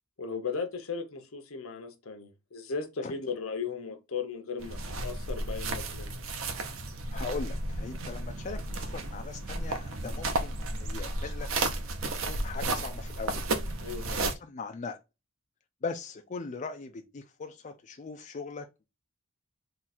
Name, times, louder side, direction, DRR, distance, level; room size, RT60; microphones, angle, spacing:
voice 1, 0.2-6.2 13.8-14.3, left 5 dB, 75° left, 0.9 m, -36 dB
sound 1, 4.6-14.3, right 2 dB, 70° right, 0.8 m, -33 dB
voice 2, 7.1-11.7 12.3-13.4 14.0-15.0 15.8-18.9, left 4 dB, 35° left, 0.4 m, -40 dB
3.8 x 2.4 x 4.2 m
head